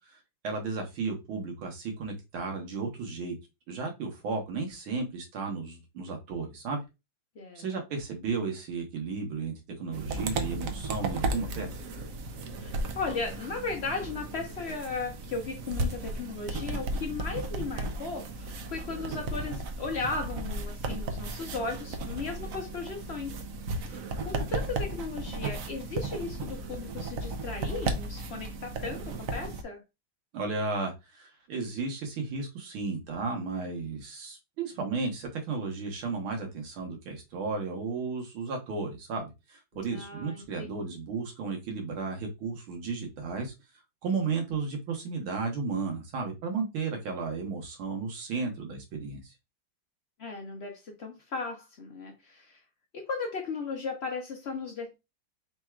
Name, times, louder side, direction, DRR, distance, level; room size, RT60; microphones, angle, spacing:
voice 1, 0.4-3.4 3.7-6.8 7.6-11.8 30.3-43.5 44.0-49.3, right 4 dB, 90° right, 2.0 m, -34 dB
sound 1, 9.9-29.6, right 2 dB, 70° right, 0.8 m, -35 dB
voice 2, 12.6-23.4 23.8-29.8 39.7-40.7 50.2-52.6 52.9-54.9, left 4 dB, 85° left, 0.5 m, -36 dB
4.4 x 2.4 x 4.4 m
omnidirectional pair, 2.2 m